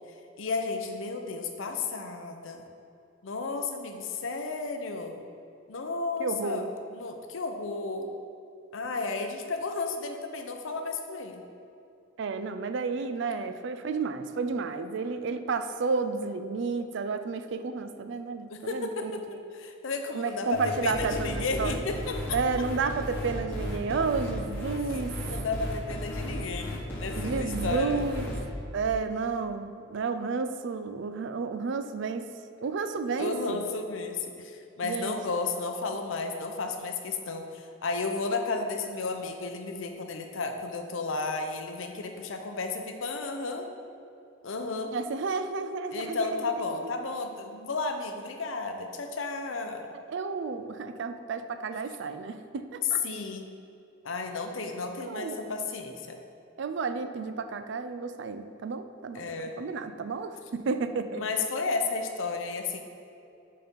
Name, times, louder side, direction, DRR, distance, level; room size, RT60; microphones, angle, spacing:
voice 1, 0.4-2.6 3.2-5.2 5.7-8.1 8.7-11.4 18.5-22.4 25.0-28.0 33.2-43.7 44.4-44.9 45.9-49.9 53.0-53.5 54.0-56.2 59.1-59.6 61.1-62.8, left 3 dB, 70° left, 5 dB, 0.6 m, -33 dB
voice 2, 6.2-6.7 12.2-19.1 20.1-21.8 22.3-25.1 27.2-28.4 28.7-32.2 32.6-33.6 34.8-35.2 44.9-46.3 49.9-53.0 55.0-55.5 56.6-59.2 59.6-61.2, right 4 dB, 60° right, 10 dB, 0.4 m, -31 dB
sound 1, 20.5-28.4, equal, 10° left, 1.3 m, -34 dB
6.6 x 4.2 x 5.2 m, 2.6 s
head